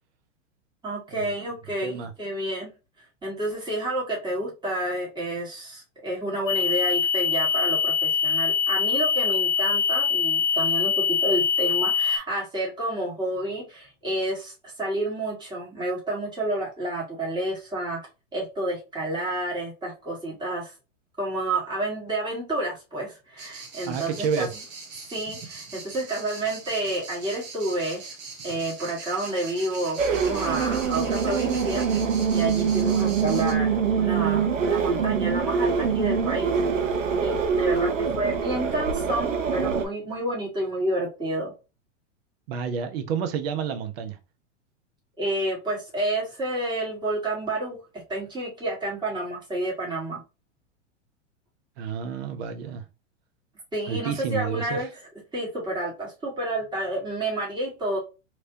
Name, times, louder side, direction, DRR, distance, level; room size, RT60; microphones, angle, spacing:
voice 1, 0.8-2.7 3.2-18.0 18.3-20.7 21.2-24.5 25.1-28.1 28.4-36.7 37.2-41.5 45.2-50.2 53.7-54.9 55.3-58.0, right 1 dB, 10° right, 1.8 m, -30 dB
voice 2, 1.8-2.1 23.9-24.5 42.5-44.2 51.8-52.8 53.9-54.8, right 7 dB, 55° right, 0.8 m, -29 dB
sound 1, 6.5-12.2, left 6 dB, 15° left, 0.5 m, -23 dB
sound 2, 23.4-33.5, right 4 dB, 30° right, 1.1 m, -41 dB
sound 3, 30.0-39.9, right 6 dB, 85° right, 0.8 m, -24 dB
3.1 x 3.0 x 2.7 m
hypercardioid pair, 105°, 37 cm